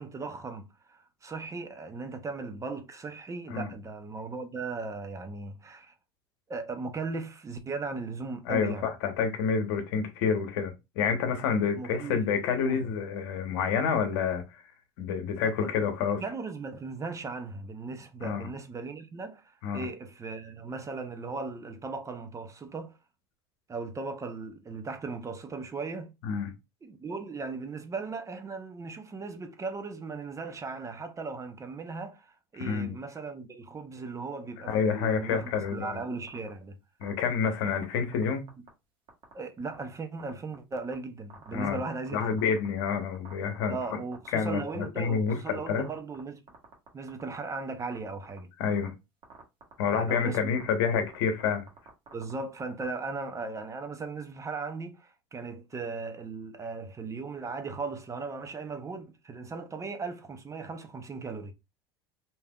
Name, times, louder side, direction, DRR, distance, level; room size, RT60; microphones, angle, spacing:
voice 1, 0.0-5.9 6.5-8.9 11.8-12.2 12.6-12.9 15.4-15.7 16.2-23.0 23.7-26.1 26.8-32.3 32.5-35.4 35.7-36.8 39.3-42.4 43.7-46.4 46.9-48.5 49.9-50.6 52.1-61.5, right 4 dB, 25° right, 0.6 m, -37 dB
voice 2, 8.4-14.6 15.0-16.2 18.2-18.5 19.6-19.9 26.2-26.5 32.6-32.9 34.6-36.0 37.0-38.4 41.5-41.8 42.1-43.8 44.3-45.8 48.6-48.9 49.8-51.6, left 6 dB, 70° left, 0.9 m, -28 dB
sound 1, 35.4-35.9 36.3-36.5 37.0-38.2 38.5-38.7 39.1-39.3 39.7-39.8 40.2-40.9 41.3-44.3 44.6-45.3 45.6-46.2 46.5-47.3 47.8-48.4 48.7-48.9 49.2-49.7 50.0-50.1 50.3-50.6 50.9-51.1 51.4-52.9, right 6 dB, 40° right, 1.3 m, -48 dB
3.3 x 2.7 x 2.3 m
hypercardioid pair, 80°, 13 cm